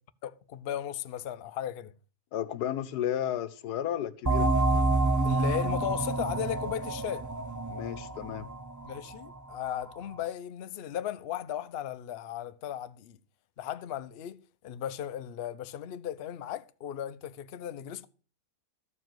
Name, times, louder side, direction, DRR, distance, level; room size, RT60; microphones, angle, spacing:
voice 1, 0.2-1.9 5.2-7.3 8.8-13.2 13.6-18.1, left 10 dB, 55° left, 0.7 m, -36 dB
voice 2, 2.3-4.5 7.7-8.5, left 11 dB, 85° left, 1.3 m, -33 dB
sound 1, 4.2-9.5, right 2 dB, 15° right, 0.6 m, -28 dB
13.5 x 4.8 x 7.7 m
omnidirectional pair, 1.7 m